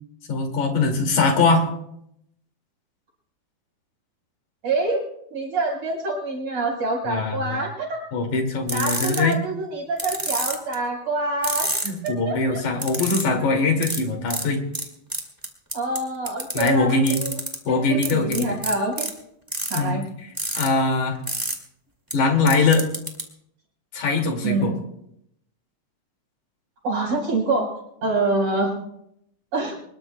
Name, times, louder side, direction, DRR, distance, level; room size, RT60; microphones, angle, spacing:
voice 1, 0.3-1.6 7.1-7.6 8.1-9.4 11.8-14.6 16.5-17.2 17.7-18.5 19.7-20.0 20.6-21.2 22.1-22.8 23.9-24.7, left 3 dB, 65° left, 3 dB, 3.8 m, -22 dB
voice 2, 4.6-5.1 5.3-8.1 8.7-11.7 12.0-12.6 15.7-17.4 17.7-19.1 19.7-20.0 24.4-24.7 26.8-27.7 28.0-28.8 29.5-29.8, right 3 dB, 50° right, -1 dB, 5.8 m, -26 dB
sound 1, 8.7-9.3 10.0-10.7 11.4-12.1 12.8-13.3 13.8-14.0 14.3-14.4 14.7-14.8 15.1-16.0 16.3-16.7 17.1-17.6 18.0-19.1 19.5-19.8 20.4-20.7 21.3-21.5 22.1-22.2 22.5-23.2, right 1 dB, 10° right, 1.5 m, -27 dB
25.0 x 21.0 x 2.3 m, 0.76 s
omnidirectional pair, 3.7 m